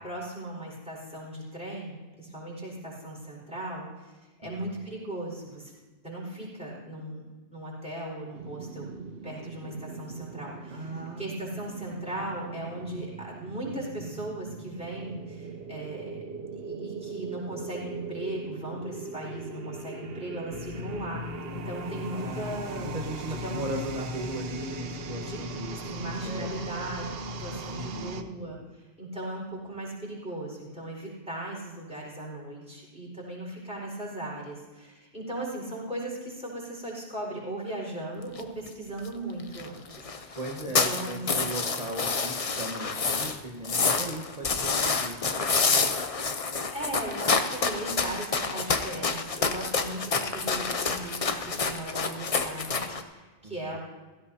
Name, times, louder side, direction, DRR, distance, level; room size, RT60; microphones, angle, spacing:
voice 1, 0.0-4.1 4.4-5.7 6.0-7.2 7.5-8.9 9.2-16.2 16.6-21.2 21.5-22.9 23.3-23.6 25.1-25.4 25.7-27.1 27.4-40.4 40.8-41.5 46.7-53.8, right 1 dB, 5° right, -4 dB, 4.7 m, -38 dB
sound 1, 8.3-28.2, right 5 dB, 60° right, 0.9 m, -40 dB
voice 2, 10.7-11.6 22.1-26.6 27.5-28.2 40.4-45.7 53.4-53.8, right 1 dB, 35° right, -1 dB, 1.3 m, -38 dB
sound 2, 20.5-28.2, left 9 dB, 70° left, 1.1 m, -42 dB
sound 3, 38.4-38.5 38.7-38.8 39.0-39.1 39.4-39.7 39.9-43.4 43.6-53.0, left 4 dB, 35° left, 0.7 m, -28 dB
16.5 x 15.5 x 2.8 m, 1.3 s
omnidirectional pair, 1.2 m